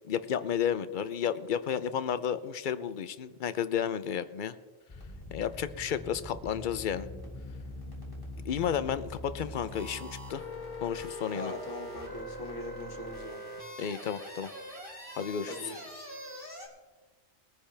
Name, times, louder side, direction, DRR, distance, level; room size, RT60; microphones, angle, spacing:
voice 1, 0.1-4.5 5.3-7.1 8.5-10.4 10.8-11.5 13.8-14.5 15.2-15.5, left 8 dB, 55° left, 13 dB, 0.6 m, -32 dB
sound 1, 4.9-16.7, left 1 dB, 15° left, 3.2 m, -43 dB
voice 2, 11.3-13.4 15.5-16.1, left 2 dB, 70° left, 3 dB, 1.9 m, -41 dB
21.0 x 10.0 x 3.4 m, 1.3 s
omnidirectional pair, 1.3 m